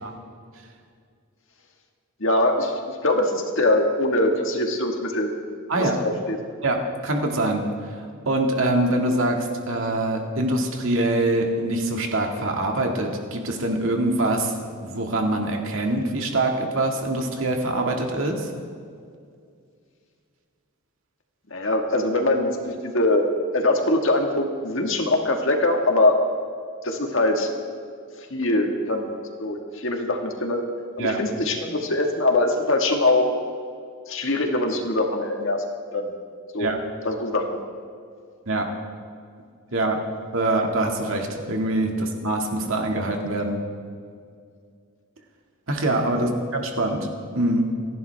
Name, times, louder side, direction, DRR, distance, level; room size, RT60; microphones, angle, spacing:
voice 1, 2.2-2.7 3.0-5.3 5.8-6.4 21.5-23.3 23.5-26.1 26.8-27.5 28.3-29.1 29.4-30.6 31.0-33.3 34.1-35.6 35.9-36.1 36.5-36.7 37.0-37.6, left 2 dB, 60° left, 3 dB, 1.7 m, -22 dB
voice 2, 7.0-7.7 8.3-18.5 31.0-31.2 36.6-36.8 38.5-38.7 39.7-40.0 40.3-43.6 45.7-47.0 47.3-47.7, right 2 dB, 65° right, 2 dB, 2.0 m, -24 dB
28.0 x 11.0 x 3.5 m, 2.2 s
head